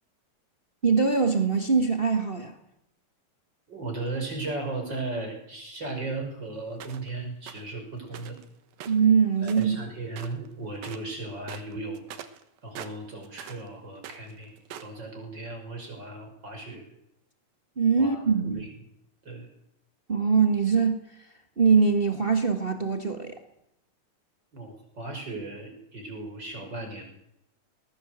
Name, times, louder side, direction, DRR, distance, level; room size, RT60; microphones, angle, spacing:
voice 1, 0.8-2.6 8.9-9.8 17.8-18.6 20.1-21.3 21.6-23.4, right 5 dB, 50° right, 0.6 m, -23 dB
voice 2, 3.7-8.4 9.4-12.0 12.6-14.5 14.8-16.8 18.0-18.2 18.5-18.7 19.2-19.5 24.5-27.0, right 2 dB, 30° right, 6.2 m, -36 dB
sound 1, 6.8-7.1 7.5-7.7 8.1-8.4 8.7-9.8 10.1-10.5 10.7-11.1 11.4-13.7 14.0-15.0, right 10 dB, 85° right, 3.2 m, -43 dB
20.5 x 20.0 x 8.0 m
omnidirectional pair, 4.1 m